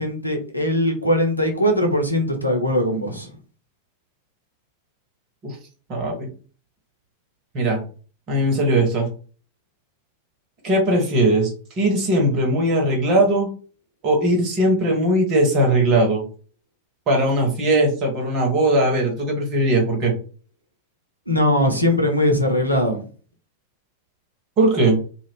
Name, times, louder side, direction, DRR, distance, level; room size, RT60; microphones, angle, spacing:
voice 1, 0.0-3.3 21.3-23.0, left 1 dB, 90° left, 3 dB, 0.7 m, -20 dB
voice 2, 5.9-6.3 7.5-7.8 8.3-9.1 10.6-13.5 14.0-16.2 17.1-20.1 24.6-25.0, right 1 dB, 35° right, 1 dB, 1.2 m, -19 dB
2.5 x 2.3 x 3.6 m, 0.39 s
figure-of-eight pair, 90°, 0 cm